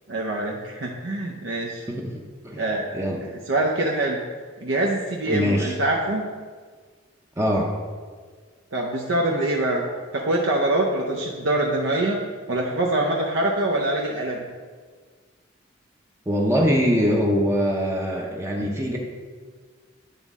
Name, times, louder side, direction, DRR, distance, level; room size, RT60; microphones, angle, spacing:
voice 1, 0.1-1.9 2.6-2.9 3.3-4.2 4.6-6.2 8.7-9.9 10.1-12.2 12.5-14.5, right 1 dB, 80° right, -1 dB, 0.7 m, -24 dB
voice 2, 1.9-2.7 2.9-3.2 5.3-5.7 7.4-7.7 16.3-19.0, equal, 15° right, -1 dB, 0.6 m, -23 dB
10.0 x 4.0 x 3.6 m, 1.5 s
head